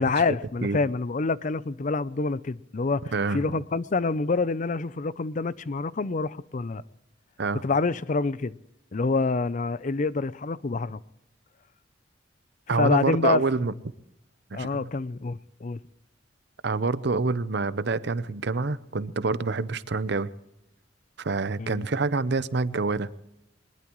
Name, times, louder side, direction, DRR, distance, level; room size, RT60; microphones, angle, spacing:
voice 1, 0.0-6.8 7.6-8.6 8.9-11.0 12.8-13.4 14.5-15.8 21.6-21.8, left 3 dB, 40° left, 0.5 m, -27 dB
voice 2, 3.1-3.5 7.4-7.6 12.7-13.7 14.5-14.9 16.6-20.3 21.2-23.1, right 3 dB, 60° right, 0.7 m, -27 dB
22.0 x 20.0 x 3.1 m
head